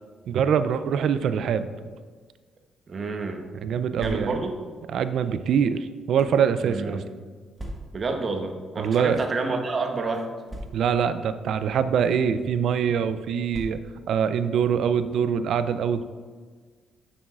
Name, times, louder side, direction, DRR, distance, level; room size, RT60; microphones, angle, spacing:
voice 1, 0.3-1.7 3.6-4.4 4.9-7.0 8.8-9.2 10.7-13.8 14.1-16.0, right 7 dB, 70° right, 12 dB, 0.4 m, -24 dB
voice 2, 2.9-3.4 4.0-4.5 6.6-7.0 7.9-10.3, right 3 dB, 40° right, 4 dB, 0.9 m, -29 dB
sound 1, 4.0-4.6 5.4-6.4 7.6-8.2 9.0-9.2 9.5-9.6 10.5-11.1 12.0-12.2 13.5-14.1, right 1 dB, 20° right, 1.3 m, -40 dB
8.6 x 7.1 x 2.4 m, 1.5 s
cardioid pair, 90°, 0 cm